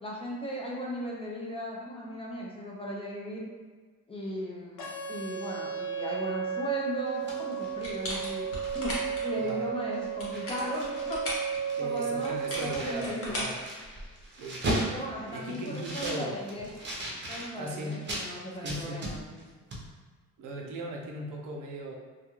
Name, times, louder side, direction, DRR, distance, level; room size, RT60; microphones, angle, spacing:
voice 1, 0.0-3.5 4.1-8.9 9.2-11.2 11.8-13.5 14.9-16.7 17.3-19.4, equal, 20° left, -3 dB, 0.4 m, -37 dB
sound 1, 4.8-12.8, right 8 dB, 75° left, 0.7 m, -34 dB
sound 2, 7.0-9.1 9.5-9.6 9.9-11.2 11.4-18.3 18.6-19.5 19.7-19.8, right 1 dB, 35° right, 0.6 m, -37 dB
sound 3, 7.8-9.3 10.0-11.5 12.2-14.3, left 1 dB, 45° left, 0.9 m, -37 dB
voice 2, 11.7-13.6 14.4-14.7 15.3-16.4 17.6-18.0 18.6-19.0 20.4-21.9, right 1 dB, 80° right, 0 dB, 0.6 m, -38 dB
2.3 x 2.2 x 2.9 m, 1.5 s
cardioid pair, 135°, 31 cm